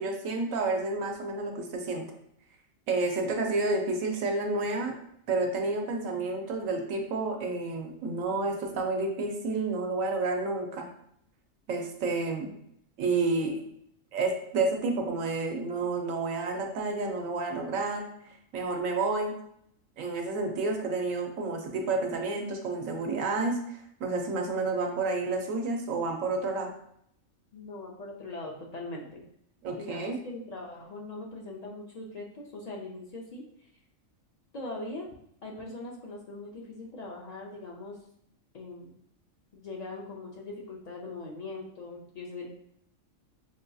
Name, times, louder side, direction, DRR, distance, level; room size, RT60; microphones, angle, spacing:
voice 1, 0.0-2.0 2.9-4.9 5.3-10.9 11.7-12.5 13.0-13.6 14.1-18.0 18.5-19.3 20.0-26.7 29.6-30.2, right 3 dB, 75° right, 3 dB, 1.0 m, -30 dB
voice 2, 27.5-29.2 29.8-33.4 34.5-35.1 35.4-38.0 38.5-38.9 39.5-42.5, left 2 dB, 85° left, -2 dB, 0.3 m, -41 dB
5.7 x 2.6 x 2.2 m, 0.71 s
omnidirectional pair, 1.4 m